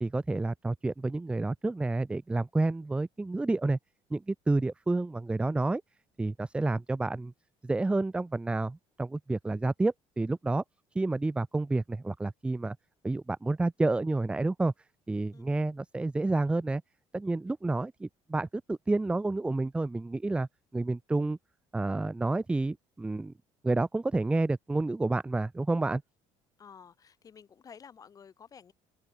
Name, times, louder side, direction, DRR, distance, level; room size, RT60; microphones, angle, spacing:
voice 1, 0.0-3.8 4.1-5.8 6.2-7.3 7.6-10.6 10.9-12.8 13.0-14.7 15.1-16.8 17.1-20.5 20.7-21.4 21.7-23.3 23.6-26.0, right 2 dB, 10° right, 0.8 m, -29 dB
voice 2, 26.6-28.7, left 7 dB, 30° left, 7.4 m, -52 dB
open air
cardioid pair, 155°, 12 cm